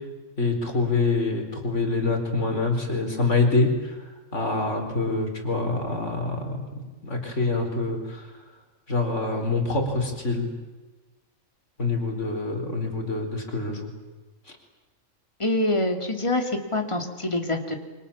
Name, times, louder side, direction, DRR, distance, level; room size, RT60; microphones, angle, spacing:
voice 1, 0.4-8.3 8.9-10.5 11.8-13.9, left 3 dB, 60° left, 3 dB, 4.9 m, -26 dB
voice 2, 15.4-17.8, left 2 dB, 20° left, 5 dB, 2.8 m, -25 dB
29.0 x 25.5 x 7.3 m, 1.2 s
omnidirectional pair, 1.4 m